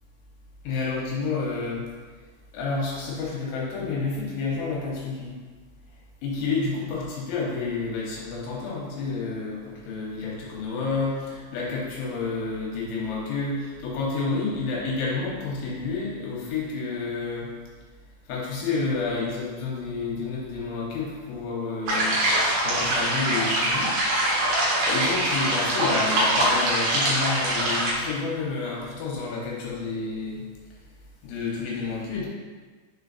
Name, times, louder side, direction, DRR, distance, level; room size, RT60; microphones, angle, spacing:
voice 1, 0.6-1.8 2.5-5.3 6.2-17.5 18.3-22.2 22.6-23.9 24.9-30.4 31.2-32.3, left 4 dB, 75° left, -4 dB, 3.3 m, -29 dB
sound 1, 21.9-27.9, right 1 dB, 65° right, 2.9 m, -23 dB
7.1 x 3.9 x 4.1 m, 1.5 s
omnidirectional pair, 5.9 m